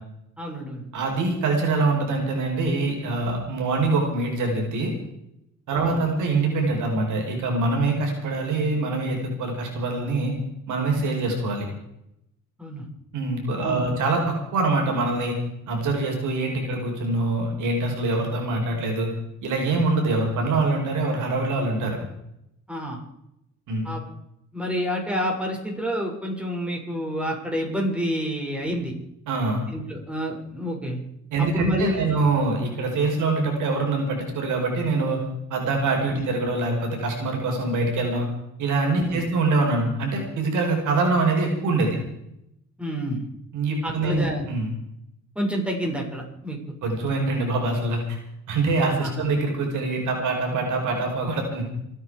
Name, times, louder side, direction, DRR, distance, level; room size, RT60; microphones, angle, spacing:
voice 1, 0.4-0.9 5.7-6.0 11.2-11.3 12.6-12.9 13.6-13.9 22.7-23.0 23.8-24.0 24.5-28.9 29.7-31.0 31.4-32.2 36.1-36.2 39.1-39.2 42.8-43.3 43.8-44.5 45.3-46.6 49.0-49.2, equal, 5° right, -1 dB, 6.2 m, -28 dB
voice 2, 0.9-4.9 5.7-10.3 10.7-11.7 13.1-15.3 15.7-19.1 19.4-22.0 23.7-23.9 29.3-29.6 31.3-35.2 35.5-38.2 38.6-42.0 43.5-44.7 46.8-48.2 48.5-51.6, right 3 dB, 80° right, 1 dB, 5.0 m, -24 dB
28.5 x 9.7 x 4.9 m, 0.81 s
cardioid pair, 90°, 30 cm